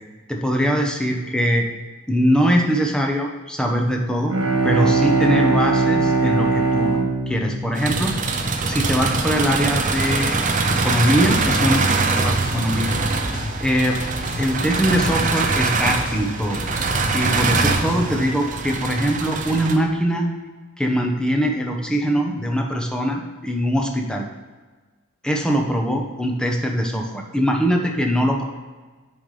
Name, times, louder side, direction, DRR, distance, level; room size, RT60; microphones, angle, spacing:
voice 1, 0.3-1.7 2.1-4.3 4.6-6.9 7.3-10.4 10.7-13.0 13.3-14.0 14.4-16.7 17.1-20.3 20.8-24.2 25.2-28.4, equal, 5° left, 1 dB, 0.8 m, -22 dB
Bowed string instrument, 4.1-8.8, right 3 dB, 80° right, 1.3 m, -21 dB
sound 1, 7.8-19.8, right 3 dB, 40° right, 0.6 m, -23 dB
sound 2, 11.1-18.3, left 1 dB, 45° left, 0.9 m, -33 dB
9.4 x 5.2 x 3.3 m, 1.3 s
head